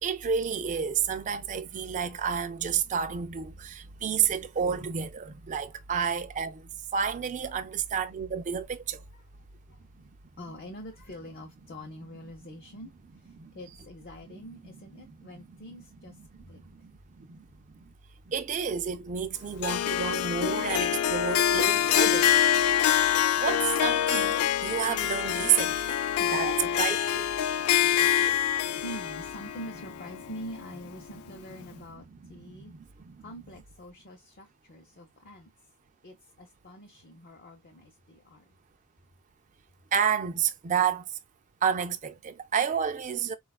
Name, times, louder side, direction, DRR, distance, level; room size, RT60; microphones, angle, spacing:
voice 1, 0.0-9.0 13.4-13.5 16.6-16.9 17.2-17.4 17.7-17.8 18.3-22.8 23.4-26.0 26.3-27.2 27.6-28.1 28.7-28.8 32.4-32.8 33.1-33.2 39.9-41.1 41.6-43.3, right 7 dB, 35° right, 0.4 m, -30 dB
voice 2, 9.1-9.8 10.4-16.1 16.5-16.6 26.1-26.4 28.8-32.7 33.2-35.5 36.0-38.4, equal, 45° left, 0.7 m, -45 dB
Harp, 19.6-30.9, left 10 dB, 75° left, 0.3 m, -25 dB
4.1 x 2.3 x 2.2 m
head